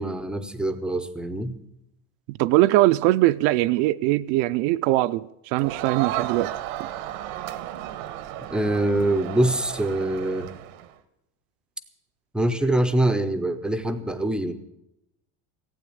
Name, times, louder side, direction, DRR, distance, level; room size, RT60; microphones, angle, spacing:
voice 1, 0.0-1.6 8.5-10.5 12.3-14.6, right 1 dB, ahead, 0.5 m, -24 dB
voice 2, 2.3-6.5 6.8-6.9, right 17 dB, 60° right, 0.5 m, -21 dB
Crowd, 5.6-10.9, right 13 dB, 90° right, 1.3 m, -33 dB
15.5 x 9.0 x 8.5 m
cardioid pair, 175°, 41 cm